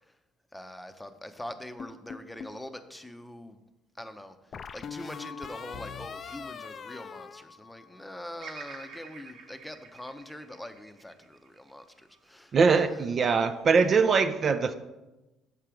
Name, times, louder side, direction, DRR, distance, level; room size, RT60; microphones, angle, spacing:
voice 1, 0.5-3.6 4.0-12.5 12.9-13.1, left 1 dB, 5° left, 8 dB, 0.7 m, -43 dB
sound 1, 1.8-2.6 4.5-8.2, left 6 dB, 45° left, 0.4 m, -41 dB
Bird vocalization bird call bird song, 8.4-12.6 13.2-13.9, right 5 dB, 60° right, 1.0 m, -48 dB
voice 2, 12.5-14.7, right 5 dB, 45° right, 10 dB, 0.4 m, -22 dB
6.7 x 4.5 x 5.0 m, 1.0 s
hypercardioid pair, 60°, 0 cm